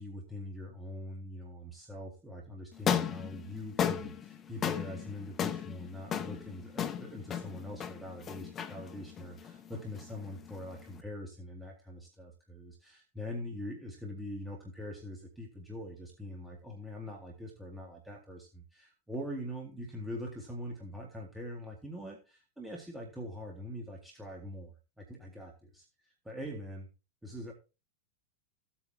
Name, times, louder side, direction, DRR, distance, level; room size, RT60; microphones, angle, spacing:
voice 1, 0.0-26.9 27.2-27.5, left 1 dB, 5° right, 0 dB, 2.1 m, -43 dB
sound 1, 2.7-11.0, left 8 dB, 25° left, 0.8 m, -36 dB
15.0 x 8.6 x 2.8 m, 0.30 s
figure-of-eight pair, 90°, 0 cm